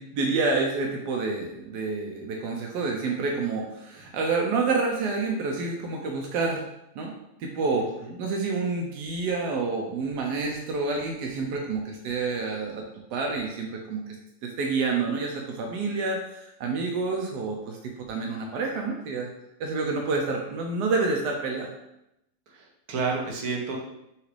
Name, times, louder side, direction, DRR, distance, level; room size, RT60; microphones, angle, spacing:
voice 1, 0.0-6.6 6.9-7.1 7.4-7.9 8.2-12.8 13.1-14.2 14.4-19.3 19.6-21.7, right 4 dB, 85° right, 1 dB, 1.2 m, -28 dB
voice 2, 7.7-8.1 22.5-23.8, right 4 dB, 70° right, 0 dB, 1.3 m, -31 dB
6.0 x 2.5 x 3.1 m, 0.84 s
omnidirectional pair, 1.7 m